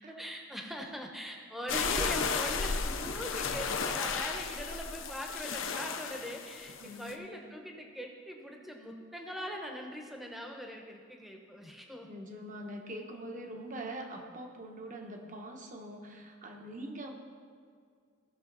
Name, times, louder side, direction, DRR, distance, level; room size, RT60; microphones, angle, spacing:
voice 1, 0.0-12.1, equal, ahead, 1 dB, 1.0 m, -41 dB
sound 1, 1.7-7.1, left 5 dB, 65° left, 0.7 m, -34 dB
voice 2, 6.8-7.3 12.1-17.1, right 1 dB, 40° right, 3 dB, 1.1 m, -43 dB
17.0 x 6.3 x 4.0 m, 2.2 s
head